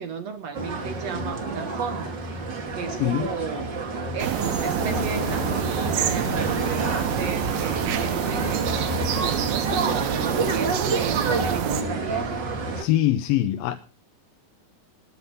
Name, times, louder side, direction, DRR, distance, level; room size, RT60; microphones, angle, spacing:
voice 1, 0.0-2.2 2.7-3.7 4.1-12.4, right 6 dB, 60° right, 2.0 m, -35 dB
sound 1, 0.5-12.8, right 3 dB, 35° right, 2.3 m, -29 dB
voice 2, 2.9-3.3 12.8-13.8, left 13 dB, 80° left, 2.6 m, -23 dB
sound 2, 4.2-9.6, left 2 dB, 20° left, 1.4 m, -36 dB
sound 3, 4.2-11.8, right 9 dB, 80° right, 2.9 m, -27 dB
20.0 x 8.0 x 5.4 m
omnidirectional pair, 4.2 m